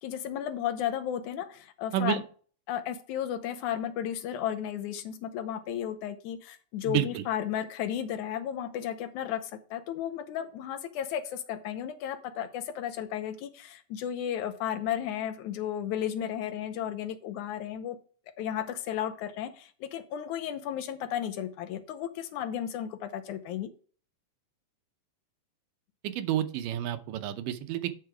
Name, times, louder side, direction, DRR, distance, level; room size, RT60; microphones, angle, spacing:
voice 1, 0.0-2.2 2.7-18.0 18.4-23.7, left 10 dB, 75° left, 10 dB, 2.0 m, -34 dB
voice 2, 6.8-7.2 26.0-27.9, right 12 dB, 75° right, 9 dB, 2.3 m, -30 dB
9.8 x 5.7 x 4.7 m, 0.42 s
omnidirectional pair, 4.0 m